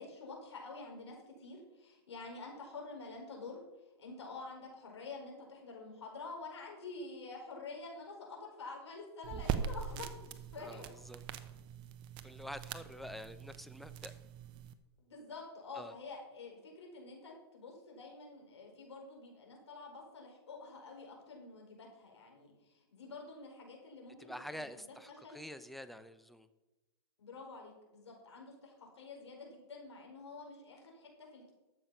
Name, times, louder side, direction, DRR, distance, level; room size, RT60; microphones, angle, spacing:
voice 1, 0.0-3.6 4.0-11.0 15.0-24.7 25.2-25.4 27.2-31.5, left 3 dB, 80° left, 0 dB, 4.9 m, -48 dB
sound 1, 9.2-14.7, right 8 dB, 35° right, 0.9 m, -42 dB
voice 2, 10.6-11.2 12.2-14.1 15.7-15.9 24.2-26.5, equal, ahead, 11 dB, 0.6 m, -47 dB
12.0 x 7.7 x 5.7 m, 1.0 s
hypercardioid pair, 130°, 14 cm